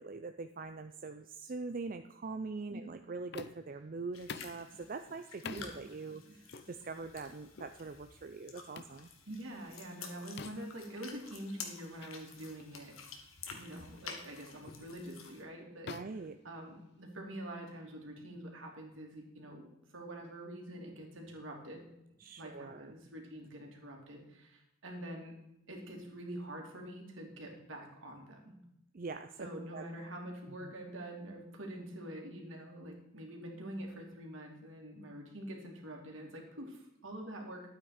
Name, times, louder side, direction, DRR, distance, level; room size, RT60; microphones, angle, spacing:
voice 1, 0.0-6.2 6.7-9.1 15.8-16.4 22.2-22.9 28.9-29.5 29.7-29.8 30.6-30.7, right 3 dB, 40° right, 8 dB, 0.5 m, -43 dB
sound 1, 3.3-3.8 4.3-4.6 5.5-5.7 6.5-6.7 7.6-7.8 8.8-9.0 10.4-10.8 12.0-12.2 12.6-12.8 13.5-13.7 14.7-14.9 15.9-17.1, left 5 dB, 55° left, 0.6 m, -47 dB
sound 2, 4.1-15.4, left 5 dB, 90° left, 1.9 m, -51 dB
voice 2, 5.4-5.8 6.3-6.4 9.3-12.9 13.5-15.9 16.4-21.8 22.4-25.3 25.7-28.5 29.4-37.6, right 1 dB, 70° right, 1 dB, 2.9 m, -46 dB
12.0 x 8.8 x 5.1 m, 0.85 s
head